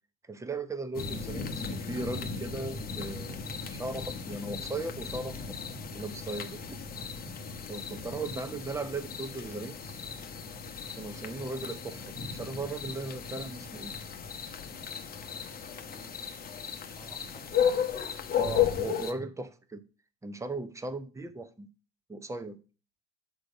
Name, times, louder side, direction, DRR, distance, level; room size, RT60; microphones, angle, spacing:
voice 1, 0.3-3.4 3.7-5.6 5.9-6.8 7.7-9.9 11.0-13.9 18.4-19.8 20.2-21.7 22.1-22.6, right 3 dB, 10° right, 1.0 m, -37 dB
sound 1, 0.9-19.1, left 7 dB, 25° left, 1.1 m, -35 dB
voice 2, 15.8-17.6, equal, 10° left, 2.0 m, -55 dB
6.4 x 5.1 x 6.3 m
hypercardioid pair, 85°, 34 cm